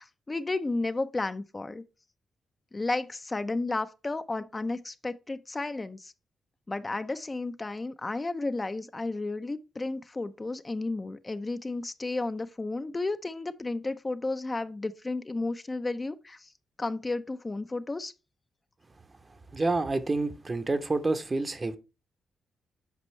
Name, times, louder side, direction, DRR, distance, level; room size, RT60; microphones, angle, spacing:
voice 1, 0.0-1.8 2.7-6.1 6.7-16.5 16.8-18.1, left 2 dB, 30° left, 0.6 m, -33 dB
voice 2, 19.5-21.8, right 3 dB, 35° right, 0.9 m, -28 dB
8.3 x 5.3 x 3.2 m
cardioid pair, 60°, 0 cm